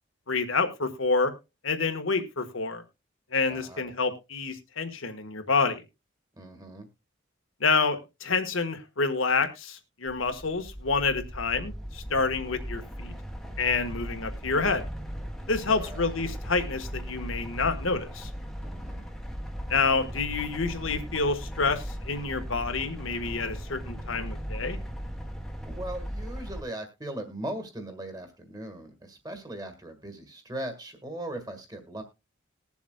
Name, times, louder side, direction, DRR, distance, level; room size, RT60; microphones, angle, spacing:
voice 1, 0.3-1.3 1.6-2.8 3.3-5.8 7.6-13.1 13.6-14.8 15.5-18.3 19.7-24.8, left 4 dB, 85° left, 8 dB, 1.5 m, -28 dB
voice 2, 3.5-3.9 6.4-6.9 15.7-16.1 18.6-19.1 25.6-32.0, right 1 dB, 20° right, 7 dB, 1.7 m, -39 dB
sound 1, 10.1-26.6, equal, ahead, 1.0 m, -38 dB
20.0 x 7.1 x 2.3 m, 0.25 s
head